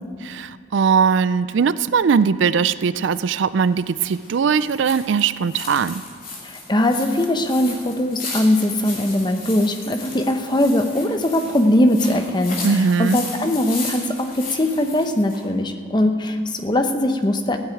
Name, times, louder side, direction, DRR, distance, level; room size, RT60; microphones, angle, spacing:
voice 1, 0.2-6.0 12.6-13.2, right 6 dB, 65° right, 16 dB, 0.4 m, -20 dB
sound 1, 3.2-15.4, left 3 dB, 45° left, 3.2 m, -35 dB
voice 2, 6.4-12.6 13.0-17.6, left 1 dB, 20° left, 6 dB, 0.9 m, -20 dB
15.0 x 8.4 x 9.2 m, 2.1 s
head